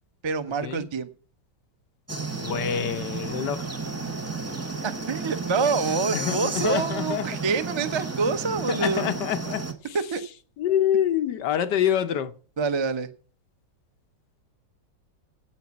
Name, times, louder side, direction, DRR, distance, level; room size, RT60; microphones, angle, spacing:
voice 1, 0.2-1.1 4.8-9.1 9.9-10.2 12.6-13.1, right 4 dB, 45° right, 0.3 m, -26 dB
sound 1, 2.1-9.7, right 3 dB, 10° right, 0.9 m, -32 dB
voice 2, 2.4-3.7 6.1-7.3 8.7-10.0 10.6-12.3, left 10 dB, 70° left, 1.4 m, -26 dB
8.9 x 8.5 x 8.2 m
omnidirectional pair, 2.0 m